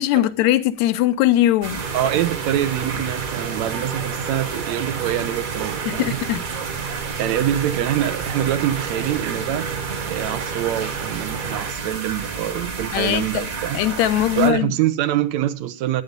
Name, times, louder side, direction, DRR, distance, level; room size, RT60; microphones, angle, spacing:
voice 1, 0.0-1.8 5.9-6.4 12.9-13.5 13.7-14.8, left 13 dB, 75° left, 1.9 m, -20 dB
sound 1, 1.6-14.5, right 4 dB, 35° right, 1.5 m, -31 dB
sound 2, 1.8-11.7, right 6 dB, 90° right, 2.8 m, -32 dB
voice 2, 1.9-6.2 7.2-9.7 10.1-13.8 14.4-16.0, right 12 dB, 75° right, 1.9 m, -24 dB
12.0 x 9.3 x 5.2 m
omnidirectional pair, 3.6 m